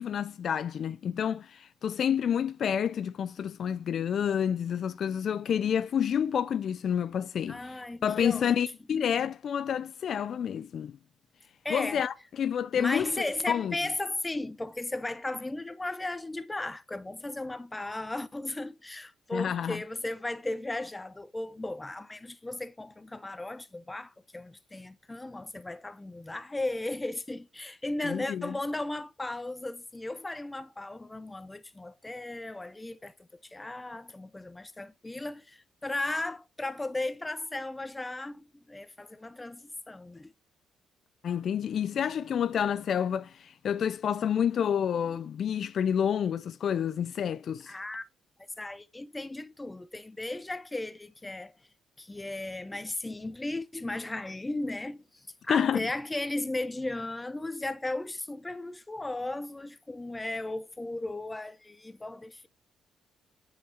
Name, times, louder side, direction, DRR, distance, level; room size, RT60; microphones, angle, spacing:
voice 1, 0.0-10.9 11.7-13.8 19.3-19.8 28.0-28.5 41.2-47.7 55.5-55.8, left 8 dB, 60° left, 0.4 m, -29 dB
voice 2, 7.5-8.6 11.6-12.0 12.7-40.3 47.7-48.0 48.6-51.5 52.0-55.0 55.4-62.5, left 2 dB, 15° left, 0.7 m, -36 dB
7.6 x 5.8 x 3.2 m
cardioid pair, 90°, 0 cm